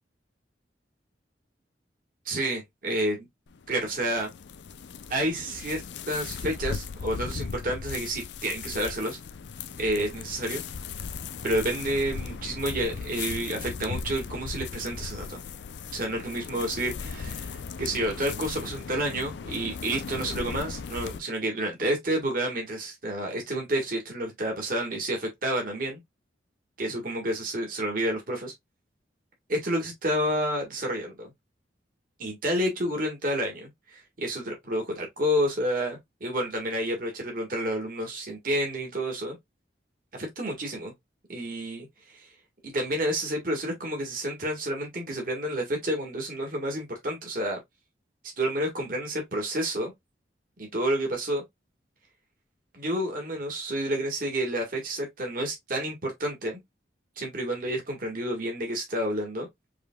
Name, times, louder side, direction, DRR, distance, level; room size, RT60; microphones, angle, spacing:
voice 1, 2.2-3.2 3.7-4.3 5.1-9.2 9.8-10.6 11.4-15.4 15.9-26.0 26.8-28.5 29.5-31.3 32.2-39.4 40.1-40.9 41.3-41.9 42.1-42.3 42.6-47.6 48.4-49.9 50.6-51.4 52.7-56.6 57.2-59.5, right 1 dB, 50° right, 1.5 m, -30 dB
sound 1, 3.5-21.2, left 5 dB, 70° left, 0.5 m, -37 dB
4.9 x 3.3 x 2.2 m
head